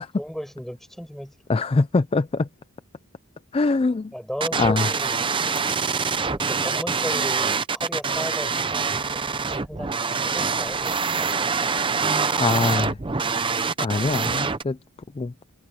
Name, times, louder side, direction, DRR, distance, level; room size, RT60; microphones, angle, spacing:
voice 1, 0.0-1.3 4.1-5.2 6.2-10.0 10.2-11.5, equal, ahead, 6.5 m, -35 dB
voice 2, 1.5-2.5 3.5-4.1 4.6-4.9 11.6-11.9 12.4-13.0 13.8-14.8 15.2-15.3, left 3 dB, 25° left, 0.4 m, -23 dB
sound 1, 4.4-14.6, right 5 dB, 25° right, 0.7 m, -25 dB
head